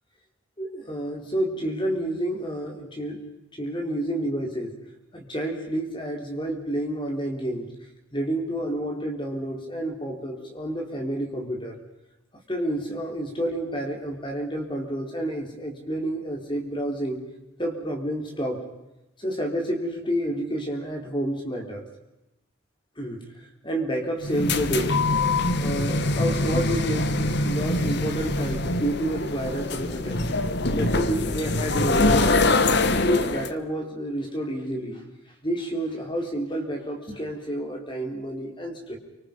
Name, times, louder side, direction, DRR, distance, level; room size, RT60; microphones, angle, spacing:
voice 1, 0.6-3.2 3.6-4.7 5.1-7.7 8.1-11.7 12.5-17.2 17.6-18.6 19.2-21.8 23.0-23.2 23.6-25.0 25.6-30.2 30.7-32.6 33.0-35.0 35.4-39.0, right 1 dB, 25° left, 2 dB, 4.3 m, -29 dB
sound 1, 24.2-33.5, left 2 dB, 55° left, 1.3 m, -24 dB
28.5 x 25.5 x 5.4 m, 0.97 s
head